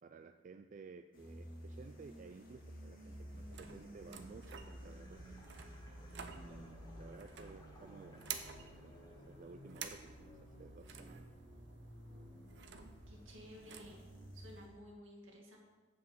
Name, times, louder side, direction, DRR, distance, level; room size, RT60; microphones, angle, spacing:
voice 1, 0.0-5.3 6.3-8.3 8.5-11.3, right 4 dB, 40° right, 8 dB, 0.3 m, -55 dB
sound 1, 1.1-14.8, equal, 45° left, 2.5 m, -54 dB
sound 2, 3.1-14.7, right 6 dB, 60° right, 0.7 m, -52 dB
sound 3, 4.9-10.6, left 1 dB, 20° left, 1.1 m, -66 dB
voice 2, 13.1-14.0 14.3-15.6, equal, 75° right, -1 dB, 2.3 m, -54 dB
7.2 x 6.1 x 7.7 m, 1.3 s
head